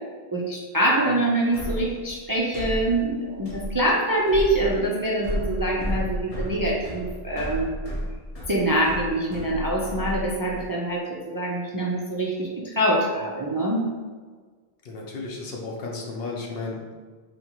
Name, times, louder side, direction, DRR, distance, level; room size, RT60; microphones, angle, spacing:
voice 1, 0.3-7.7 8.5-13.9, right 1 dB, 30° right, -4 dB, 0.4 m, -25 dB
sound 1, 1.5-10.7, equal, 35° left, 0.8 m, -33 dB
voice 2, 14.8-16.9, left 3 dB, 65° left, -1 dB, 0.9 m, -34 dB
4.0 x 3.4 x 2.9 m, 1.5 s
omnidirectional pair, 1.1 m